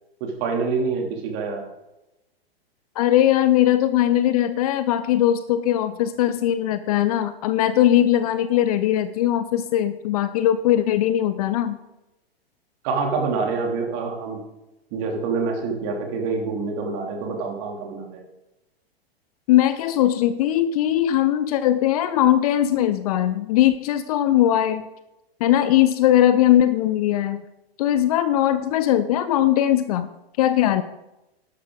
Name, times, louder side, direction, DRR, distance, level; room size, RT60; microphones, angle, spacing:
voice 1, 0.2-1.6 12.8-14.4 14.9-18.2, right 4 dB, 40° right, 1 dB, 3.2 m, -26 dB
voice 2, 3.0-11.8 19.5-24.9 25.4-27.4 27.8-30.1 30.4-30.8, left 12 dB, 35° left, 13 dB, 0.6 m, -20 dB
13.0 x 11.5 x 4.0 m, 0.94 s
figure-of-eight pair, 105°, 31 cm